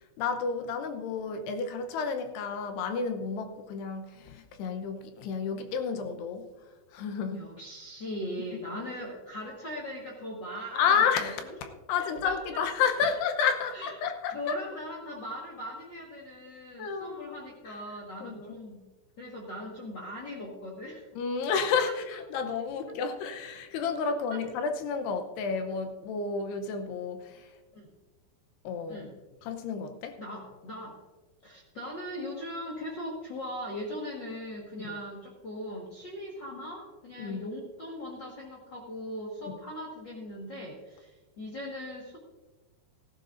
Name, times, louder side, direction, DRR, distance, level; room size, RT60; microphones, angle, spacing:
voice 1, 0.2-6.5 6.9-7.5 10.7-14.6 16.8-17.4 17.7-17.8 18.2-18.6 21.2-27.5 28.6-29.1 29.4-30.2 34.8-35.0 37.2-37.5 39.4-39.6, left 6 dB, 80° left, 6 dB, 2.9 m, -31 dB
voice 2, 7.3-10.9 11.2-11.3 12.2-12.3 13.0-13.1 13.7-13.9 14.3-18.8 19.2-21.1 24.3-24.4 27.7-27.9 28.9-29.1 30.2-31.0 31.4-42.2, left 1 dB, 60° left, -4 dB, 1.1 m, -39 dB
17.5 x 14.5 x 2.6 m, 1.2 s
omnidirectional pair, 4.8 m